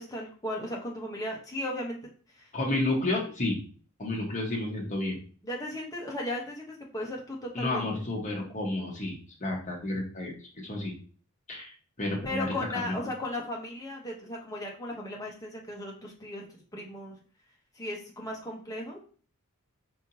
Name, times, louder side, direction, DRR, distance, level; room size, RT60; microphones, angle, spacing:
voice 1, 0.0-2.0 2.3-2.5 5.4-7.9 12.2-17.2 17.7-19.0, left 1 dB, 15° left, -2 dB, 1.1 m, -36 dB
voice 2, 2.5-3.6 4.0-5.2 7.5-10.3 10.6-10.9 11.5-12.9, left 2 dB, 35° left, -2 dB, 1.4 m, -31 dB
5.0 x 3.5 x 2.8 m, 0.41 s
head